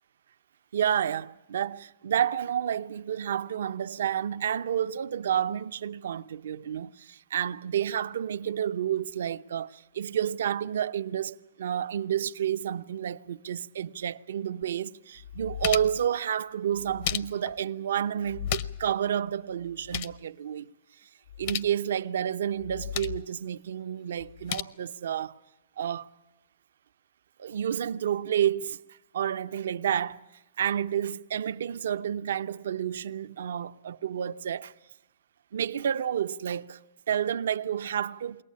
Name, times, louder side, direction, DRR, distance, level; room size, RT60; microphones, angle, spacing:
voice 1, 0.7-20.7 21.0-21.1 21.4-25.4 25.8-26.1 27.4-28.8 29.1-30.2 30.6-34.7 35.5-36.8 37.1-38.4, right 9 dB, 70° right, 0.7 m, -30 dB
sound 1, 14.6-14.7 15.2-16.1 16.8-17.6 18.3-18.9 19.2-19.3 19.6-20.2 21.3-21.7 22.6-23.2 24.2-24.6, left 10 dB, 40° left, 0.7 m, -34 dB
22.5 x 18.0 x 8.5 m
hypercardioid pair, 160°, 0 cm